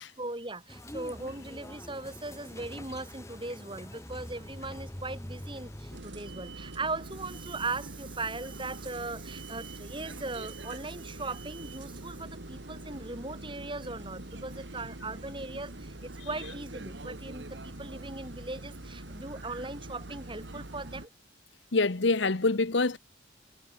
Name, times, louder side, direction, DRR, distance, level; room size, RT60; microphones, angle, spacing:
voice 1, 0.0-21.1, right 3 dB, 25° right, 6.4 m, -39 dB
sound 1, 0.7-6.0, left 1 dB, 15° left, 1.8 m, -44 dB
sound 2, 5.9-21.1, right 2 dB, 65° right, 2.0 m, -43 dB
voice 2, 21.7-23.0, left 3 dB, 70° left, 1.1 m, -25 dB
head